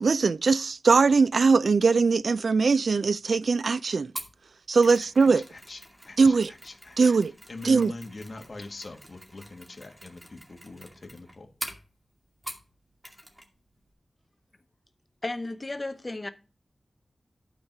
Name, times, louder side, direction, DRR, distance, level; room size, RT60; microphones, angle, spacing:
voice 1, 0.0-4.1 4.7-5.4 6.2-6.5 7.0-7.3 7.6-7.9, right 4 dB, 75° right, 0.4 m, -21 dB
Mechanisms, 4.2-12.7 13.0-13.5 13.8-13.9, equal, 15° right, 2.2 m, -44 dB
voice 2, 4.8-5.8 6.1-7.1 7.5-11.5, left 2 dB, 50° left, 1.9 m, -43 dB
voice 3, 15.2-16.3, left 2 dB, 30° left, 0.7 m, -33 dB
12.0 x 4.7 x 5.5 m
wide cardioid pair, 95°, 0 cm